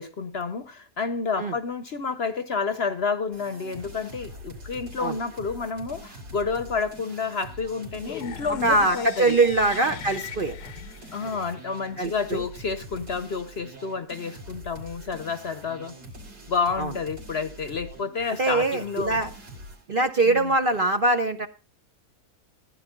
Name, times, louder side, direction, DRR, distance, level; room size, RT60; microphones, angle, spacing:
voice 1, 0.0-9.4 11.1-16.0 16.5-19.2 20.2-20.5, left 5 dB, 50° left, 1.0 m, -30 dB
sound 1, 3.3-19.8, equal, 85° right, 3.9 m, -44 dB
sound 2, 8.1-12.0, left 10 dB, 90° left, 1.5 m, -40 dB
voice 2, 8.6-10.6 12.0-12.4 16.8-16.9 18.4-19.3 19.9-21.5, right 2 dB, 40° right, 0.8 m, -23 dB
15.5 x 10.0 x 3.7 m
omnidirectional pair, 1.7 m